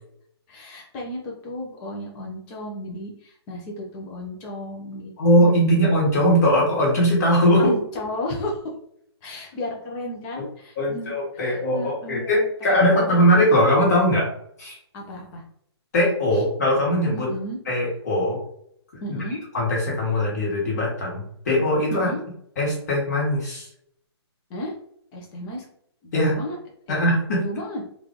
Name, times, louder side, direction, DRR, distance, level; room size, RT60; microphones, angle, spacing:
voice 1, 0.5-5.9 7.6-8.6 9.2-13.2 14.9-15.4 16.3-16.4 17.1-17.6 19.0-19.4 21.9-22.2 24.5-24.7 25.1-25.7 26.0-26.6 26.9-27.0 27.4-27.8, left 1 dB, 15° left, -1 dB, 0.5 m, -34 dB
voice 2, 5.2-7.7 10.8-14.3 14.6-14.8 15.9-17.3 17.7-18.4 19.1-19.2 19.5-22.1 22.6-23.7 26.1-26.3 26.9-27.5, equal, 35° left, -4 dB, 1.3 m, -20 dB
3.0 x 2.4 x 3.7 m, 0.69 s
hypercardioid pair, 165°, 14 cm